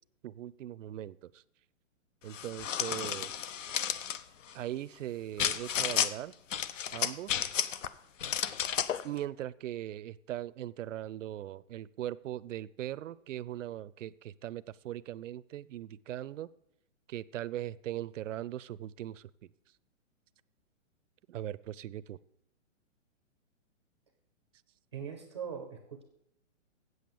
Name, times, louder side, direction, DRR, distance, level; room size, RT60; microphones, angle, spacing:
voice 1, 0.2-1.4 2.2-3.3 4.5-6.3 6.9-7.5 9.0-16.5 17.1-19.3 21.3-22.2, right 12 dB, 70° right, 19 dB, 0.5 m, -40 dB
sound 1, 2.3-4.2 5.4-6.1 6.5-7.9 8.2-9.0, left 9 dB, 75° left, 0.8 m, -32 dB
voice 2, 24.9-26.0, right 7 dB, 25° right, 4 dB, 0.5 m, -41 dB
8.1 x 7.8 x 7.0 m, 0.77 s
hypercardioid pair, 170°, 39 cm